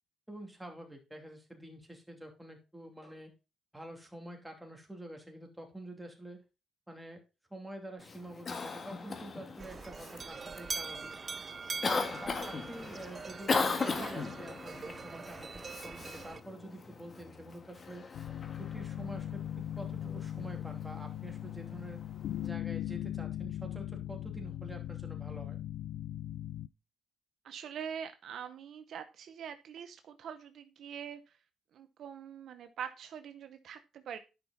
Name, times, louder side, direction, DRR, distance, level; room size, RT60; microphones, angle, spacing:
voice 1, 0.3-3.3 3.7-6.4 6.9-7.2 7.5-11.1 11.9-18.1 18.6-22.0 22.4-25.6, right 1 dB, 5° right, 2 dB, 2.8 m, -47 dB
Cough, 8.0-22.5, left 4 dB, 40° left, 1.6 m, -39 dB
sound 1, 9.6-16.4, right 5 dB, 35° right, 0.4 m, -43 dB
voice 2, 14.0-14.3 27.4-31.4 31.7-34.2, right 8 dB, 70° right, 9 dB, 0.8 m, -44 dB
sound 2, 18.1-26.7, left 12 dB, 75° left, 0.4 m, -39 dB
10.5 x 5.8 x 4.0 m, 0.29 s
cardioid pair, 90°, 0 cm